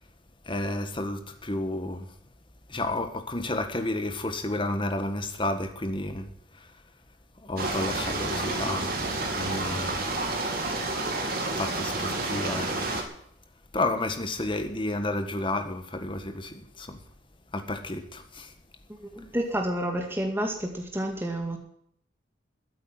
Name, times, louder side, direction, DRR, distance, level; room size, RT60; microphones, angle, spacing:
voice 1, 0.4-2.1 2.7-6.3 6.5-6.7 7.4-9.1 9.3-10.1 11.6-13.0 13.7-17.0 17.5-18.5, left 2 dB, 25° left, 7 dB, 1.6 m, -31 dB
sound 1, 7.6-13.0, right 2 dB, 50° right, 2.9 m, -30 dB
voice 2, 19.0-21.6, right 1 dB, 10° right, 2 dB, 2.1 m, -30 dB
14.0 x 8.5 x 9.6 m, 0.67 s
head